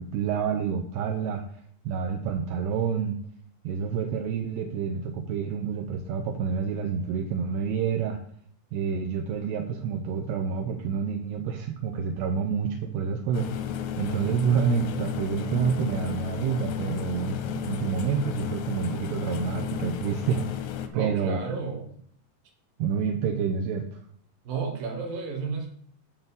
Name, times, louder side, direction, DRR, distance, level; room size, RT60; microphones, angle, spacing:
voice 1, 0.0-1.4 1.9-3.2 3.6-8.2 8.7-13.5 14.0-20.4 20.9-21.4 22.8-24.0, right 6 dB, 80° right, 3 dB, 2.6 m, -28 dB
sound 1, 13.3-20.9, left 9 dB, 90° left, 2.9 m, -33 dB
voice 2, 20.9-21.9 24.4-25.7, right 4 dB, 60° right, 2 dB, 3.1 m, -32 dB
9.0 x 4.0 x 7.0 m, 0.62 s
omnidirectional pair, 4.9 m